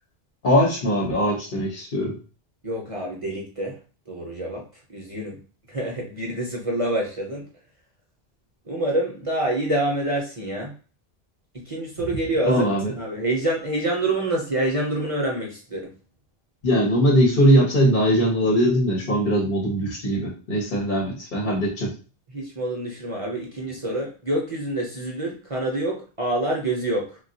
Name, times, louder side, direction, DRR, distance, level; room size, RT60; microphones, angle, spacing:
voice 1, 0.4-2.1 12.5-12.9 16.6-21.9, equal, 55° left, -1 dB, 0.9 m, -21 dB
voice 2, 2.6-3.8 4.1-4.6 4.9-5.4 5.7-7.5 8.7-10.7 11.7-12.6 13.0-15.9 22.3-27.2, right 1 dB, 40° right, -2 dB, 0.6 m, -26 dB
3.5 x 2.2 x 2.7 m, 0.36 s
omnidirectional pair, 1.1 m